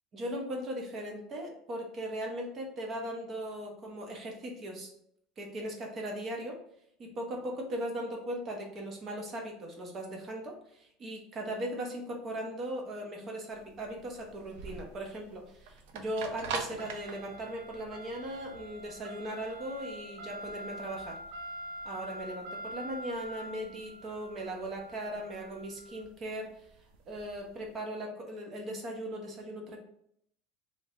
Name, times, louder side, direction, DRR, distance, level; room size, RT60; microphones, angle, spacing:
voice 1, 0.1-4.9 5.4-6.6 7.0-21.2 21.8-26.5 27.1-29.8, right 1 dB, 30° right, 1 dB, 0.9 m, -38 dB
sound 1, 13.5-27.6, right 2 dB, 80° right, 0.5 m, -43 dB
3.4 x 2.9 x 3.1 m, 0.70 s
cardioid pair, 150°, 0 cm